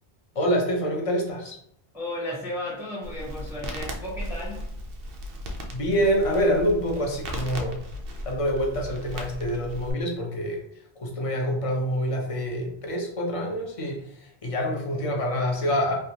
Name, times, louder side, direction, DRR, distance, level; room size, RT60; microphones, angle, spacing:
voice 1, 0.3-1.6 5.7-7.8 8.3-10.6 11.0-15.9, equal, 40° left, 0 dB, 0.6 m, -26 dB
voice 2, 1.9-4.7, left 1 dB, 5° right, -4 dB, 0.7 m, -34 dB
Crackle, 3.0-9.9, equal, 65° right, 0.7 m, -36 dB
3.4 x 2.3 x 2.7 m, 0.72 s
omnidirectional pair, 1.1 m